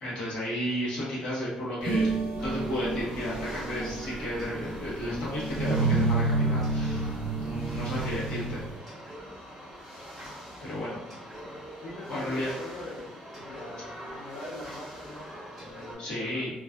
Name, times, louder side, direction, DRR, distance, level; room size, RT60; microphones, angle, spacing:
voice 1, 0.0-2.1 2.4-8.6 10.6-11.0 12.1-12.5 16.0-16.5, left 1 dB, 50° left, -7 dB, 1.0 m, -33 dB
sound 1, 1.9-8.8, right 3 dB, 80° right, 0.6 m, -30 dB
sound 2, 2.4-15.9, equal, 5° left, 1.1 m, -44 dB
voice 2, 11.8-16.5, left 1 dB, 85° left, -6 dB, 0.7 m, -43 dB
2.4 x 2.4 x 2.2 m, 0.96 s
cardioid pair, 170°, 2 cm